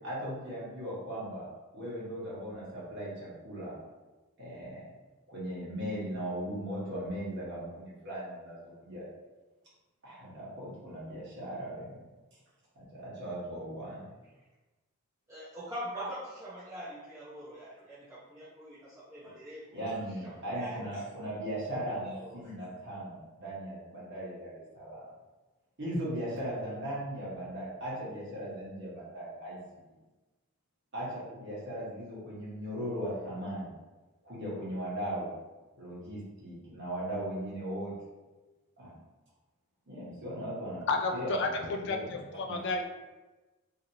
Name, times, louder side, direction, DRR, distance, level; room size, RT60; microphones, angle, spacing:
voice 1, 0.0-1.5 1.7-3.8 4.4-4.8 5.3-9.1 10.0-11.9 12.7-14.0 19.7-25.0 25.8-29.6 29.8-29.9 30.9-33.8 34.2-35.3 35.8-37.9 38.8-39.0 39.9-40.8 41.1-42.6, right 1 dB, 55° right, -8 dB, 1.3 m, -38 dB
voice 2, 15.3-19.8 20.5-20.8 22.0-22.4, equal, 15° right, -11 dB, 0.6 m, -43 dB
voice 3, 40.9-42.9, left 3 dB, 55° left, 4 dB, 0.3 m, -32 dB
2.8 x 2.8 x 2.7 m, 1.2 s
head